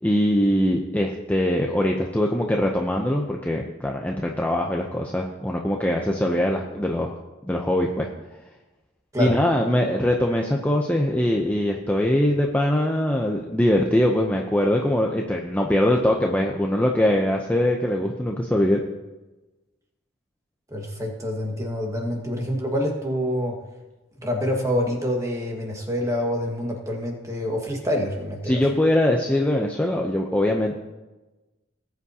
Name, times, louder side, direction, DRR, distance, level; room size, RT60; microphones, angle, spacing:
voice 1, 0.0-8.1 9.2-18.8 28.4-30.8, left 1 dB, 10° left, 0 dB, 0.6 m, -22 dB
voice 2, 20.7-23.6 24.2-28.6, equal, 15° right, 1 dB, 1.7 m, -26 dB
19.0 x 8.3 x 2.8 m, 1.1 s
head